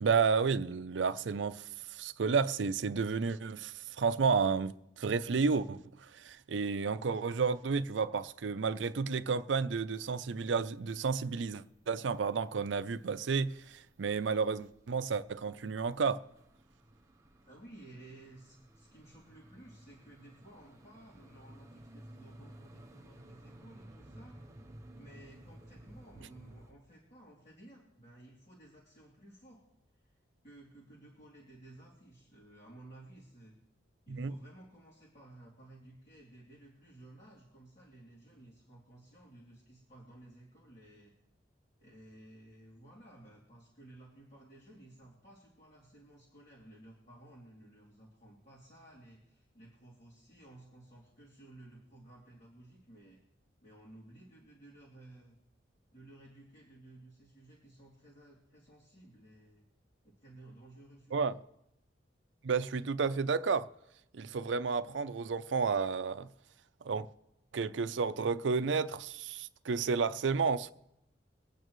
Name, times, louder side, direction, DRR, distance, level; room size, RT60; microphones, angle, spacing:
voice 1, 0.0-16.2 34.1-34.3 61.1-61.4 62.4-63.7 64.1-66.3 66.8-67.1 67.5-70.7, right 5 dB, 85° right, 0.5 m, -31 dB
sound 1, 9.9-26.7, right 1 dB, 20° right, 1.0 m, -56 dB
voice 2, 17.4-24.4 25.0-29.6 29.9-30.1 30.4-33.6 34.1-41.1 41.8-53.2 53.6-55.4 55.9-59.6 60.0-61.4, right 1 dB, 45° left, 2.7 m, -56 dB
23.0 x 8.8 x 3.1 m
head